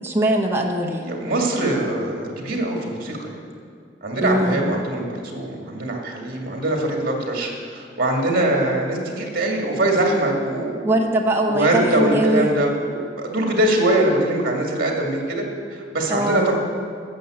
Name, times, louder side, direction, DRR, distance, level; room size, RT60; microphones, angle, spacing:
voice 1, 0.0-1.3 4.2-4.6 10.8-12.5 16.1-16.5, right 1 dB, 15° right, 0 dB, 0.9 m, -21 dB
voice 2, 1.0-3.4 4.0-10.8 11.5-15.5 15.7-16.5, right 1 dB, 55° right, 1 dB, 2.2 m, -22 dB
11.5 x 7.0 x 7.7 m, 2.2 s
head